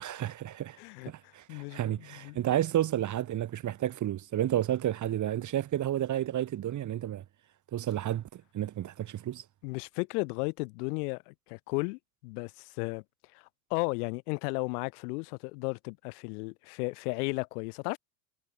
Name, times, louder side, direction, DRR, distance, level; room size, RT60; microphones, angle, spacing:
voice 1, 0.0-0.8 1.1-7.2 7.7-9.4, right 12 dB, 35° right, 2.5 m, -31 dB
voice 2, 0.8-2.4 9.6-13.0 13.3-13.4 13.7-18.0, left 30 dB, 65° left, 5.8 m, -34 dB
hypercardioid pair, 100°, 49 cm